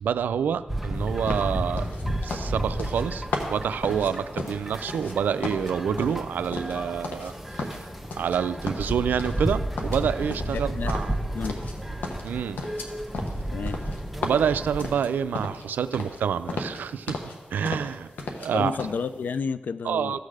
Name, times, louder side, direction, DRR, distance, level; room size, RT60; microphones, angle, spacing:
voice 1, 0.0-1.9 2.2-7.9 8.2-11.1 12.2-12.6 14.2-17.2 17.5-18.1 18.4-18.8 19.8-20.2, right 7 dB, 90° right, 13 dB, 0.4 m, -27 dB
sound 1, 0.7-15.0, right 1 dB, ahead, 1.0 m, -32 dB
sound 2, 1.3-5.2 5.4-7.3 7.6-8.4 8.7-9.5 9.8-11.8 12.0-15.7 15.9-16.2 16.5-17.4 17.6-18.5 18.8-19.0, left 3 dB, 85° left, 1.1 m, -34 dB
voice 2, 10.5-10.9 11.3-11.6 13.5-13.8 18.5-20.2, left 5 dB, 70° left, 15 dB, 0.4 m, -31 dB
14.0 x 6.5 x 4.9 m, 1.3 s
cardioid pair, 45°, 3 cm